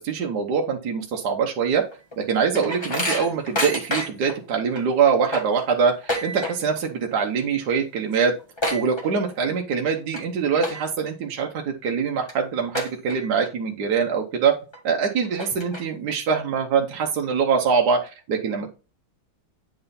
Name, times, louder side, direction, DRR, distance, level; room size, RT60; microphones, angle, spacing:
voice 1, 0.0-1.8 2.2-8.3 8.7-14.5 14.8-18.7, right 6 dB, 60° right, 2 dB, 1.3 m, -23 dB
sound 1, 1.9-4.3 4.7-4.8 5.1-6.8 7.1-7.5 7.8-7.9 8.1-9.5 10.0-10.2 10.6-11.1 11.6-11.7 12.3-12.4 12.7-13.5 13.9-14.0 14.7-14.8 15.2-16.1, left 1 dB, 15° left, 1.3 m, -29 dB
8.9 x 3.6 x 4.1 m, 0.32 s
omnidirectional pair, 2.2 m